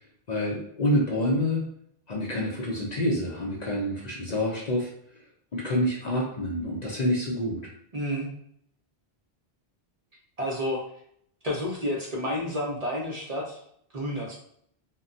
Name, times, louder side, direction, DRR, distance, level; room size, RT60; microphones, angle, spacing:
voice 1, 0.3-1.7 2.1-4.9 5.5-7.6, left 1 dB, 50° left, -3 dB, 0.6 m, -27 dB
voice 2, 7.9-8.3 10.4-10.8 11.4-13.6 13.9-14.3, left 1 dB, 45° right, -4 dB, 0.6 m, -30 dB
2.2 x 2.2 x 3.8 m, 0.68 s
omnidirectional pair, 1.1 m